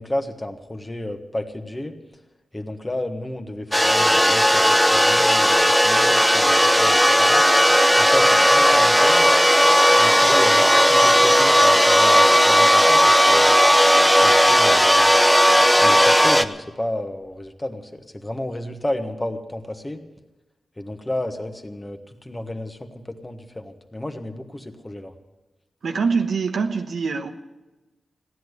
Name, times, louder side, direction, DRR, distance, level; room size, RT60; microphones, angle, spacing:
voice 1, 0.0-1.9 2.5-5.6 5.8-7.4 8.0-9.3 10.0-13.6 14.2-15.1 15.7-20.0 20.8-25.1, left 1 dB, 20° left, 6 dB, 1.5 m, -31 dB
sound 1, 3.7-16.4, equal, ahead, 0.7 m, -15 dB
voice 2, 25.8-27.3, right 5 dB, 80° right, 5 dB, 1.1 m, -24 dB
15.5 x 10.5 x 8.1 m, 1.1 s
cardioid pair, 80°, 0 cm